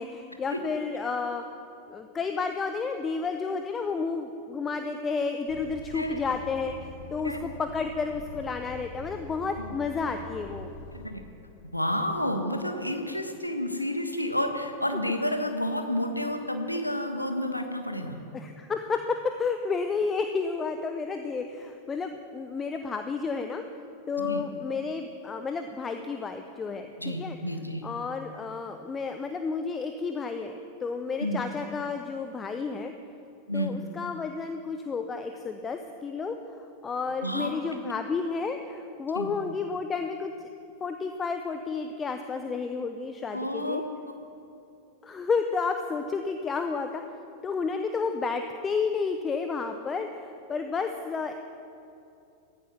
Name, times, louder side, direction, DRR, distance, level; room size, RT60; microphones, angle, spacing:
voice 1, 0.0-1.4 1.9-10.7 18.3-23.6 24.1-27.4 27.8-30.5 30.8-32.9 33.5-36.4 36.8-40.5 40.8-43.8 45.0-47.0 47.4-51.3, left 4 dB, 20° left, 7 dB, 0.8 m, -31 dB
Truck, 5.5-11.1, left 3 dB, 60° left, 1.7 m, -44 dB
voice 2, 5.9-6.2 7.2-7.4 9.6-9.7 10.9-11.2 11.7-18.2 24.2-24.4 27.0-27.8 31.2-31.5 33.5-33.8 37.2-37.5 37.8-37.9 39.1-39.3 43.3-43.9, left 1 dB, 85° left, 5 dB, 1.5 m, -30 dB
15.0 x 14.5 x 6.1 m, 2.7 s
figure-of-eight pair, 90°, 0 cm